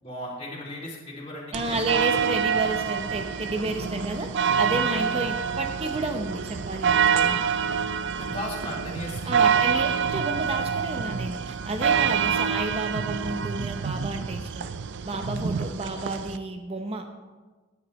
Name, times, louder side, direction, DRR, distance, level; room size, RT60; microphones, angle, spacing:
voice 1, 0.0-2.0 8.2-9.8, left 1 dB, 25° left, -5 dB, 2.7 m, -37 dB
voice 2, 1.5-7.4 9.3-14.7 15.0-17.1, right 2 dB, 25° right, 5 dB, 0.7 m, -31 dB
sound 1, 1.5-16.4, right 7 dB, 55° right, 0.4 m, -26 dB
15.0 x 9.8 x 3.2 m, 1.3 s
head